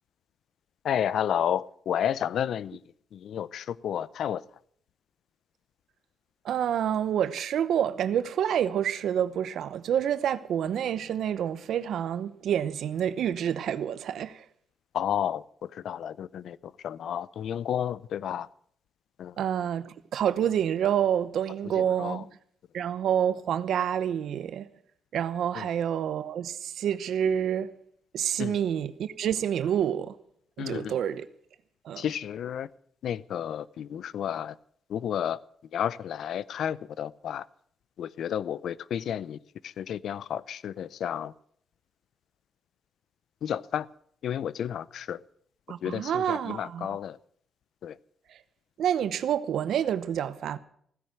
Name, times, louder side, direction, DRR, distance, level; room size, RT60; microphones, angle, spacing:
voice 1, 0.8-2.8 3.1-4.4 14.9-18.5 19.2-19.4 21.7-22.2 25.5-25.7 28.4-28.6 30.6-31.0 32.0-32.7 33.0-34.6 34.9-35.4 35.7-37.5 38.0-41.3 43.4-43.9 44.2-45.2 45.8-47.2 47.8-48.0, left 9 dB, 75° left, 0.5 m, -31 dB
voice 2, 6.4-14.4 19.4-22.2 22.7-24.7 25.1-27.7 28.1-30.2 30.6-31.3 31.8-32.0 45.7-46.9 48.3-48.4 48.8-50.6, right 9 dB, 80° right, 0.8 m, -28 dB
16.0 x 10.5 x 7.7 m
cardioid pair, 120°, 0 cm